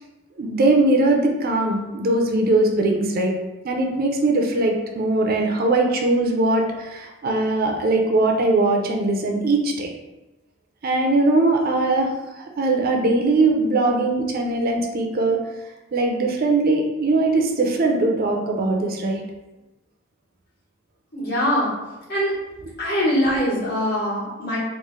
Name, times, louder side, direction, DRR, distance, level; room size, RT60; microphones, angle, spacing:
voice 1, 0.4-3.3 3.6-9.9 10.8-15.5 15.9-19.2, right 2 dB, 50° right, 2 dB, 0.5 m, -20 dB
voice 2, 21.1-21.7 22.1-22.3 22.8-24.6, equal, 55° left, -7 dB, 1.4 m, -22 dB
3.1 x 2.4 x 3.6 m, 1.0 s
head